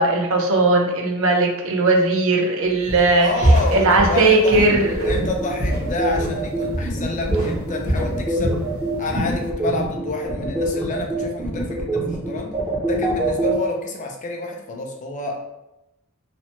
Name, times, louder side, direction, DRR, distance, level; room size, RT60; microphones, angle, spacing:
voice 1, 0.0-3.3 3.7-5.1, right 2 dB, 65° right, 1 dB, 0.5 m, -18 dB
Walk footsteps, 2.9-3.2 3.4-6.4 6.7-7.0 7.3-8.7 9.0-9.4, right 1 dB, 45° right, 1.0 m, -23 dB
voice 2, 3.2-8.5 9.0-12.5 12.8-15.4, left 2 dB, 35° left, 1 dB, 0.4 m, -28 dB
sound 1, 4.5-13.5, right 2 dB, 15° right, 0.5 m, -25 dB
3.0 x 2.0 x 2.9 m, 0.93 s
head